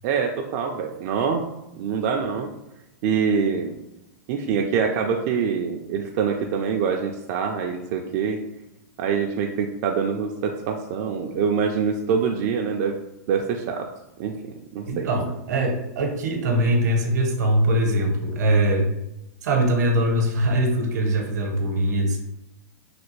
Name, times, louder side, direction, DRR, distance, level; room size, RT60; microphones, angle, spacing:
voice 1, 0.0-1.4 1.8-2.5 3.0-3.8 4.3-8.4 9.0-13.0 13.3-13.9 14.2-15.1, right 6 dB, 50° right, 1 dB, 0.4 m, -25 dB
voice 2, 14.9-18.9 19.4-22.2, right 1 dB, 80° right, 3 dB, 0.8 m, -22 dB
3.3 x 2.3 x 3.1 m, 0.86 s
hypercardioid pair, 130°, 9 cm